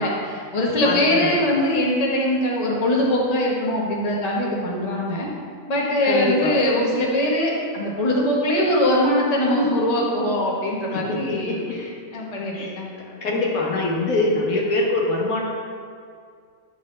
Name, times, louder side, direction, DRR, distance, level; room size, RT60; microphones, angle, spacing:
voice 1, 0.0-5.3 5.7-13.0, left 1 dB, 30° left, -3 dB, 1.1 m, -22 dB
voice 2, 0.8-1.5 6.0-6.5 10.9-11.8 12.5-12.8 13.0-15.4, left 2 dB, 75° left, -2 dB, 1.5 m, -24 dB
9.5 x 5.2 x 3.2 m, 2.2 s
omnidirectional pair, 1.5 m